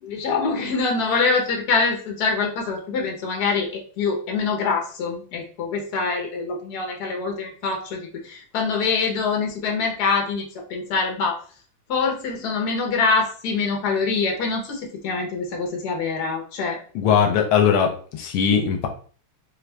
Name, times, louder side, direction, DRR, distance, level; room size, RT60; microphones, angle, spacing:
voice 1, 0.0-3.7 4.0-8.0 8.2-10.4 10.7-11.4 11.9-16.8, left 4 dB, 55° left, 1 dB, 1.4 m, -24 dB
voice 2, 16.9-18.9, left 7 dB, 80° left, 4 dB, 1.5 m, -20 dB
4.4 x 2.4 x 3.3 m, 0.43 s
omnidirectional pair, 2.4 m